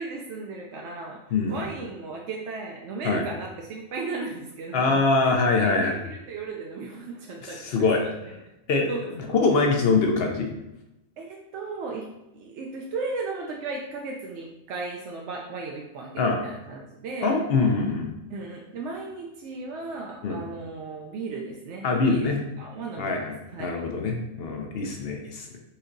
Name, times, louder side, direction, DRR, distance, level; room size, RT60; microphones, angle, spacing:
voice 1, 0.0-7.6 8.0-8.3 8.9-9.3 11.2-12.1 12.3-17.3 18.3-22.3 22.6-23.7, right 3 dB, 65° right, -1 dB, 0.7 m, -36 dB
voice 2, 4.7-6.0 7.4-8.0 8.7-8.9 9.3-10.5 16.2-16.4 17.2-18.1 20.2-20.4 21.8-22.4 23.0-23.3 23.6-25.5, left 3 dB, 65° left, 2 dB, 0.6 m, -23 dB
4.3 x 4.0 x 2.6 m, 0.92 s
omnidirectional pair, 1.5 m